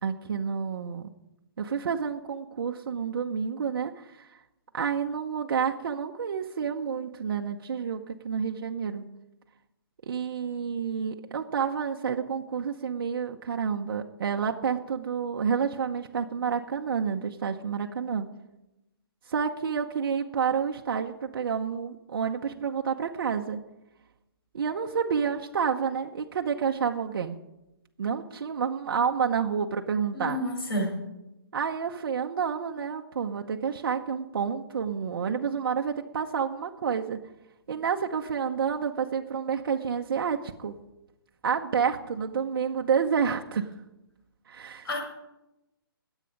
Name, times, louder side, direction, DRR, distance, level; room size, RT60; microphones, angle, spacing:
voice 1, 0.0-1.1 1.6-4.3 4.7-9.0 10.1-18.3 19.3-23.6 24.5-27.4 28.0-30.4 31.5-37.2 37.7-40.7 41.4-43.7 44.5-44.9, right 6 dB, 65° right, 2 dB, 0.9 m, -29 dB
voice 2, 30.1-30.9 44.8-45.0, equal, 70° left, 1 dB, 5.4 m, -29 dB
19.5 x 8.2 x 5.3 m, 0.94 s
hypercardioid pair, 170°, 13 cm